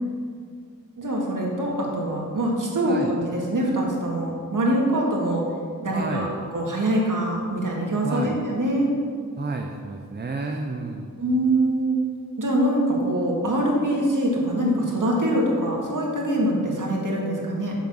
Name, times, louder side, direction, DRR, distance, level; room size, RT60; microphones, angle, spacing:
voice 1, 1.0-5.5 5.8-6.3 6.5-8.9 11.2-12.0 12.4-17.8, right 1 dB, 60° right, -2 dB, 2.0 m, -24 dB
voice 2, 5.9-6.3 8.0-8.4 9.4-11.1, right 3 dB, 30° right, 3 dB, 0.6 m, -31 dB
7.1 x 6.0 x 6.2 m, 2.1 s
wide cardioid pair, 65°, 35 cm